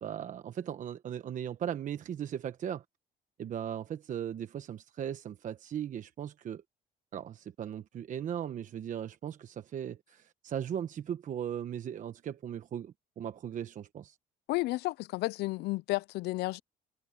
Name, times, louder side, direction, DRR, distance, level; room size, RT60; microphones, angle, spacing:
voice 1, 0.0-2.8 3.4-6.6 7.1-14.2, right 9 dB, 50° right, 1.1 m, -38 dB
voice 2, 14.5-16.6, left 20 dB, 75° left, 0.4 m, -32 dB
cardioid pair, 110°, 17 cm